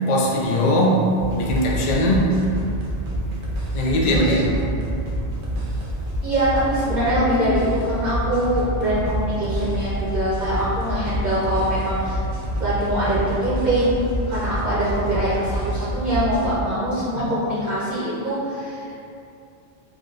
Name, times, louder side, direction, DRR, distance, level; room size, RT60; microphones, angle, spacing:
voice 1, 0.1-1.1 1.4-2.3 3.7-4.5 17.2-17.3, equal, 70° left, -3 dB, 0.4 m, -20 dB
sound 1, 1.2-16.5, right 1 dB, 75° right, 0.9 m, -27 dB
voice 2, 4.1-4.5 6.2-12.2 12.6-14.0 14.3-19.0, right 1 dB, 45° right, -10 dB, 0.7 m, -23 dB
3.5 x 2.6 x 2.4 m, 2.6 s
omnidirectional pair, 1.2 m